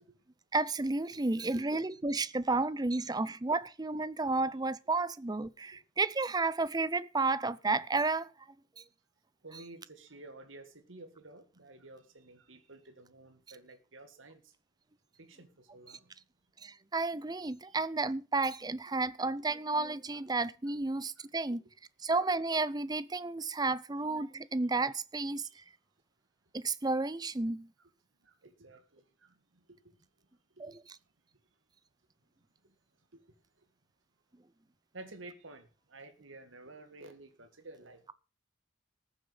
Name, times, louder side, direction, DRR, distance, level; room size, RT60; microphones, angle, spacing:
voice 1, 0.5-8.3 8.8-8.9 15.9-16.0 16.6-21.6 22.0-25.6 26.5-27.7 30.6-30.8, right 3 dB, 20° right, 0.6 m, -32 dB
voice 2, 1.1-1.7 9.4-14.4 15.2-16.1 17.6-17.8 25.4-25.7 28.2-29.3 29.7-29.8 30.6-30.7 33.1-33.2 34.9-38.1, right 2 dB, 75° right, 2.0 m, -52 dB
14.5 x 7.3 x 7.1 m
head